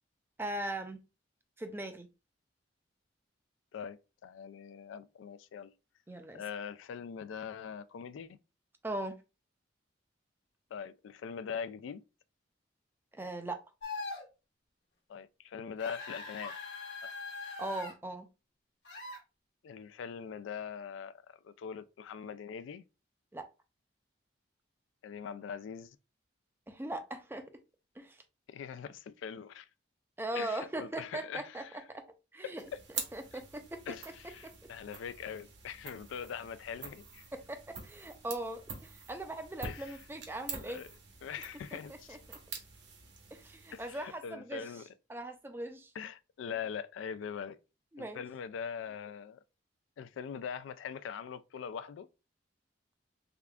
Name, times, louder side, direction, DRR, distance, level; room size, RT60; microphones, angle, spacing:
voice 1, 0.4-1.0 1.6-2.1 6.1-6.4 8.8-9.2 13.1-13.6 17.6-18.3 23.3-23.5 26.7-27.5 28.0-28.2 30.2-31.6 31.9-32.0 32.3-32.6 33.1-33.8 34.4-34.5 37.3-40.8 42.1-42.4 43.3-44.6 45.1-45.9 47.9-48.2, right 1 dB, 10° right, 0.4 m, -39 dB
voice 2, 3.7-5.7 6.3-8.4 10.7-12.0 15.1-16.6 17.0-17.1 19.6-22.8 25.0-26.0 28.5-29.7 30.3-31.8 32.4-32.8 33.9-37.3 39.6-40.0 40.5-40.9 41.2-42.2 43.7-44.9 45.9-47.6 48.0-49.4 50.0-52.1, left 7 dB, 80° left, 0.3 m, -42 dB
sound 1, 13.8-14.3 15.8-17.9 18.9-19.2, left 3 dB, 60° left, 1.1 m, -42 dB
sound 2, 32.6-44.3, right 5 dB, 65° right, 0.9 m, -47 dB
3.5 x 3.5 x 2.3 m
head